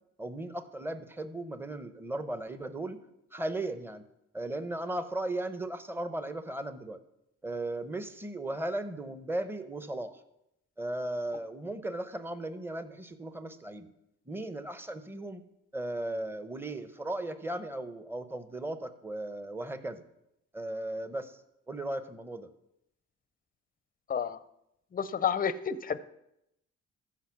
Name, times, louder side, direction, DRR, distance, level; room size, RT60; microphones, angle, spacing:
voice 1, 0.2-3.0 3.3-4.0 4.3-7.0 7.4-10.2 10.8-13.9 14.3-15.4 15.7-20.0 20.5-21.4 21.7-22.5, right 1 dB, 5° right, 10 dB, 0.9 m, -36 dB
voice 2, 24.9-26.0, left 7 dB, 30° left, 14 dB, 0.6 m, -30 dB
14.0 x 5.0 x 5.9 m, 0.83 s
cardioid pair, 90°, 30 cm